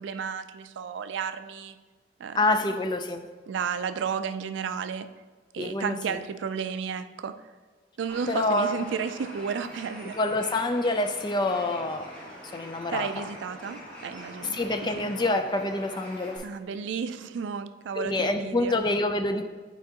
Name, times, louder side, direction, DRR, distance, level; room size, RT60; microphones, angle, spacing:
voice 1, 0.0-1.8 2.2-2.4 3.5-5.2 5.5-7.5 8.0-10.2 12.9-14.6 16.4-18.8, right 6 dB, 85° right, 12 dB, 0.3 m, -33 dB
voice 2, 2.4-3.3 5.6-6.2 8.3-8.8 10.2-12.1 12.5-13.3 14.4-16.5 18.0-19.4, left 2 dB, 25° left, 6 dB, 0.4 m, -27 dB
Bird, 8.1-16.4, equal, 10° left, 1.4 m, -44 dB
9.0 x 4.6 x 2.8 m, 1.4 s
head